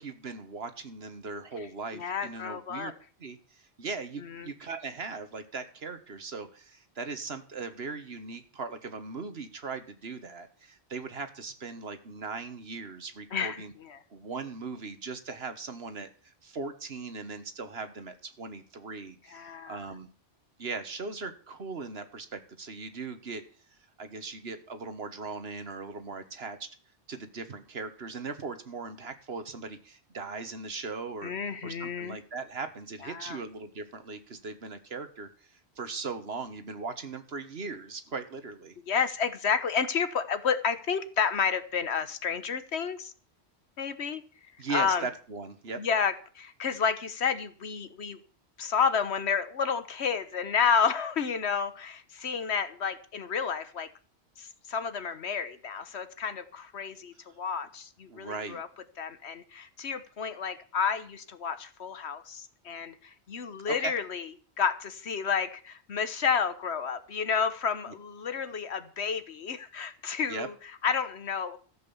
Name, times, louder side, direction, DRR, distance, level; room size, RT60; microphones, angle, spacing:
voice 1, 0.0-2.9 3.2-13.7 14.1-20.1 20.6-23.4 24.0-26.7 27.1-31.3 31.6-38.8 44.6-45.8 58.1-58.6 63.7-63.9 67.9-68.0 70.3-70.5, right 4 dB, 65° right, 9 dB, 1.6 m, -39 dB
voice 2, 1.9-2.9 4.2-4.5 13.3-14.0 19.3-19.8 31.2-32.2 33.0-33.4 38.9-43.1 43.8-44.2 44.7-45.1 45.8-48.2 48.6-53.9 54.4-58.7 59.0-64.3 64.6-70.5 70.8-71.6, left 6 dB, 75° left, 12 dB, 1.4 m, -30 dB
14.0 x 7.8 x 7.1 m, 0.41 s
omnidirectional pair, 1.1 m